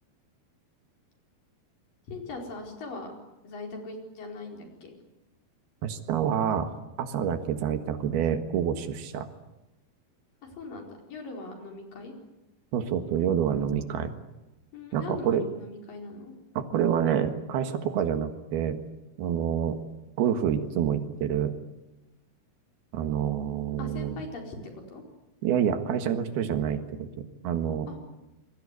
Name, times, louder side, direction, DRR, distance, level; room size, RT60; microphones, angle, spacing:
voice 1, 2.1-3.1 3.4-4.9 10.4-12.1 14.7-16.3 23.8-25.0 27.9-28.0, left 3 dB, 60° left, 2 dB, 6.2 m, -40 dB
voice 2, 5.8-6.7 7.0-9.3 12.7-14.1 14.9-15.5 16.6-18.8 19.2-19.8 20.2-21.5 22.9-24.2 25.4-27.9, right 8 dB, 85° right, 8 dB, 3.6 m, -27 dB
27.0 x 22.5 x 8.3 m, 1.0 s
omnidirectional pair, 4.4 m